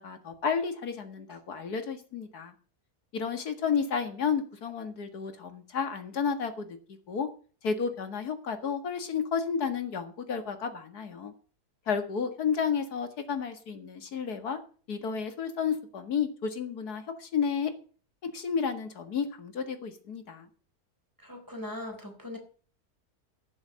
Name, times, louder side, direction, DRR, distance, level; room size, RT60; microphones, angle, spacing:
voice 1, 0.0-2.5 3.1-6.8 7.1-7.3 7.6-11.3 11.9-14.6 14.9-17.7 18.2-20.5, left 6 dB, 80° left, 8 dB, 2.3 m, -31 dB
voice 2, 21.2-22.4, left 1 dB, 10° right, 3 dB, 3.9 m, -40 dB
15.0 x 7.2 x 6.4 m, 0.40 s
omnidirectional pair, 1.6 m